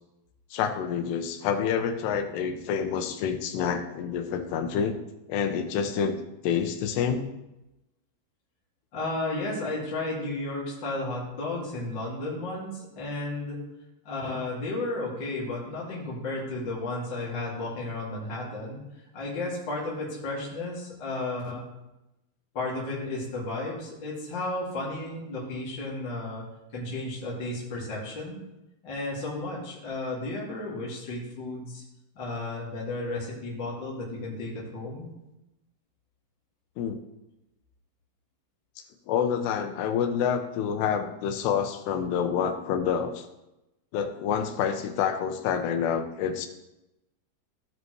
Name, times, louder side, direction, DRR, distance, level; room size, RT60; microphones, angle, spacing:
voice 1, 0.5-5.0 5.3-6.2 6.4-7.3 36.8-37.0 39.1-43.3 43.9-46.5, left 7 dB, 90° left, 7 dB, 3.0 m, -28 dB
voice 2, 8.9-13.6 14.0-18.8 19.1-21.7 22.5-26.4 26.7-28.4 28.8-31.8 32.1-35.1, left 2 dB, 35° left, -6 dB, 2.3 m, -33 dB
16.0 x 5.4 x 3.1 m, 0.94 s
omnidirectional pair, 4.7 m